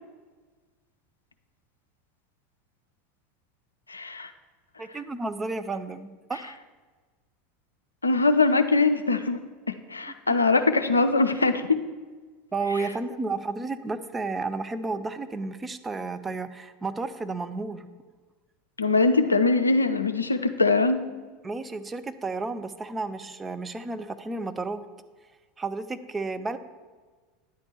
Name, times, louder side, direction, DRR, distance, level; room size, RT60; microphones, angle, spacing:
voice 1, 3.9-4.3 8.0-9.4 9.7-11.6 18.8-21.0, left 3 dB, 85° left, 9 dB, 0.5 m, -22 dB
voice 2, 4.8-6.6 12.5-17.9 21.4-24.8 25.6-26.6, right 3 dB, 15° right, 9 dB, 0.5 m, -32 dB
9.9 x 4.4 x 7.2 m, 1.4 s
figure-of-eight pair, 75°, 0 cm